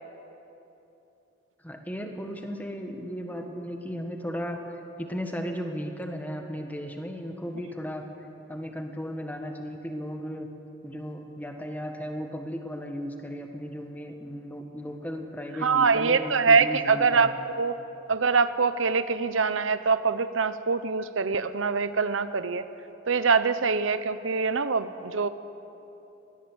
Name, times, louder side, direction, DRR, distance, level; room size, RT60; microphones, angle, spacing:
voice 1, 1.6-8.1 8.5-10.5 10.8-17.3, equal, 10° left, 4 dB, 1.6 m, -35 dB
voice 2, 15.6-17.8 18.1-22.6 23.1-25.3, right 5 dB, 85° right, 12 dB, 0.8 m, -24 dB
21.0 x 16.5 x 8.1 m, 3.0 s
head